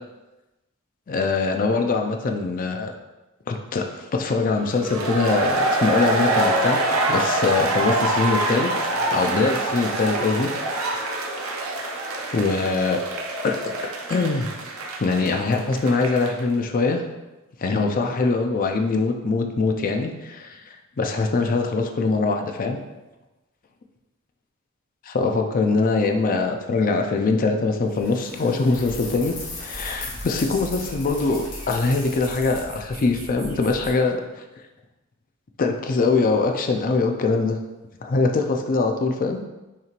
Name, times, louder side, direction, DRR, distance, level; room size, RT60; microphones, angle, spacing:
voice 1, 1.1-2.9 3.5-6.8 7.1-8.7 9.1-10.5 10.8-11.2 12.3-13.0 13.4-13.7 14.1-14.5 15.0-17.0 17.6-20.6 21.0-22.8 25.1-34.2 35.6-37.6 38.0-39.4, left 3 dB, 40° left, 4 dB, 0.4 m, -23 dB
sound 1, 4.8-16.4, right 2 dB, 75° right, 0.6 m, -25 dB
sound 2, 27.9-32.8, left 3 dB, 60° left, 1.1 m, -38 dB
sound 3, 28.7-33.9, equal, 40° right, 1.0 m, -39 dB
5.7 x 3.1 x 2.5 m, 1.1 s
head